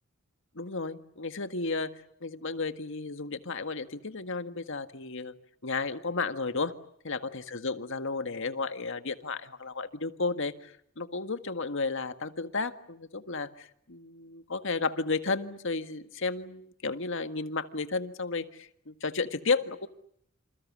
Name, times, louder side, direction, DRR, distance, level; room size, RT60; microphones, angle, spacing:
voice 1, 0.6-1.9 2.2-5.3 5.6-6.7 7.0-19.9, left 3 dB, 65° left, 9 dB, 1.8 m, -33 dB
28.0 x 27.5 x 7.5 m, 0.70 s
head